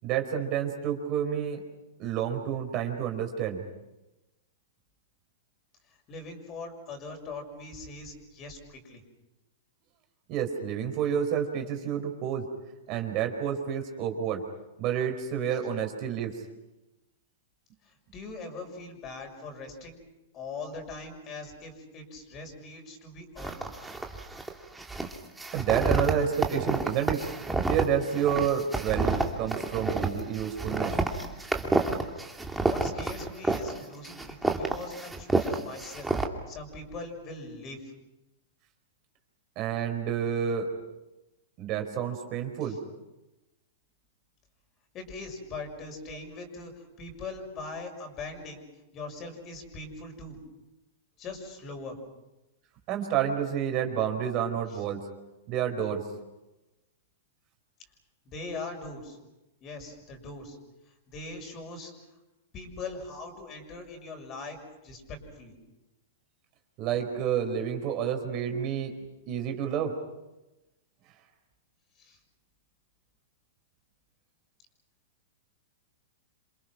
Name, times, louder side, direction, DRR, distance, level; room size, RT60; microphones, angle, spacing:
voice 1, 0.0-1.6 2.0-3.6 10.3-12.5 12.9-14.4 14.8-16.4 25.5-27.3 27.7-30.9 39.6-40.7 41.6-42.8 52.9-55.0 55.5-56.0 66.8-68.9 69.3-70.0, right 8 dB, 40° right, 4 dB, 4.5 m, -29 dB
voice 2, 5.9-9.0 17.8-20.0 20.3-23.6 32.4-36.1 36.5-37.9 42.6-42.7 44.9-48.6 48.9-50.4 51.2-52.0 54.7-54.8 58.2-59.2 59.6-60.6 61.1-61.9 62.5-64.6 64.8-65.5 72.0-72.2, left 3 dB, 35° left, 4 dB, 6.5 m, -41 dB
sound 1, 23.4-24.5 24.8-33.8 34.0-36.3, right 3 dB, 5° right, 2.6 m, -29 dB
28.0 x 27.0 x 6.1 m, 1.0 s
hypercardioid pair, 110°, 0 cm